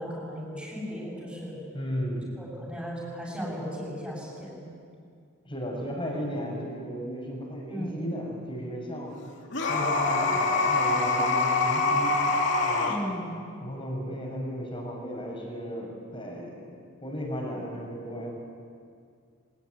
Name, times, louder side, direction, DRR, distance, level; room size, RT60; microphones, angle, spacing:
voice 1, 0.0-1.6 2.4-4.6 7.7-8.1 12.9-13.3, equal, 5° right, -6 dB, 7.3 m, -36 dB
voice 2, 1.7-2.3 5.4-9.1 9.7-12.2 12.6-12.9 13.6-16.7 17.0-18.3, equal, 25° left, -1 dB, 6.5 m, -35 dB
sound 1, 9.5-13.0, left 3 dB, 55° left, 3.0 m, -24 dB
25.5 x 19.5 x 9.3 m, 2.3 s
head